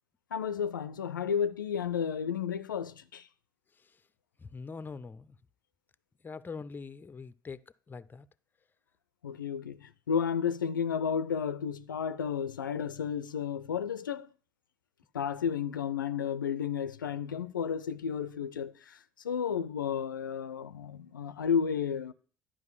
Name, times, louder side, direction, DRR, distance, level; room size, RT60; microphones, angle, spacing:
voice 1, 0.3-3.2 9.2-14.3 15.1-19.0 19.2-22.1, left 7 dB, 80° left, 0.4 m, -32 dB
voice 2, 4.4-5.4 6.2-7.6 7.9-8.3, left 5 dB, 20° left, 0.5 m, -43 dB
11.0 x 5.1 x 7.2 m
figure-of-eight pair, 60°, 11 cm